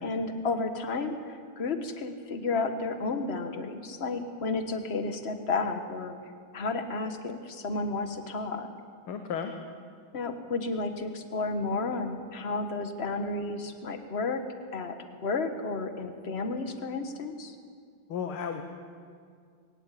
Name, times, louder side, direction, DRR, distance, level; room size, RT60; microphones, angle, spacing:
voice 1, 0.0-6.1 6.5-8.7 10.1-14.4 14.7-15.0 15.2-17.6, left 3 dB, 35° left, 7 dB, 1.6 m, -32 dB
voice 2, 9.1-9.5 18.1-18.6, left 7 dB, 85° left, 6 dB, 2.1 m, -33 dB
22.5 x 18.5 x 8.5 m, 2.2 s
omnidirectional pair, 2.3 m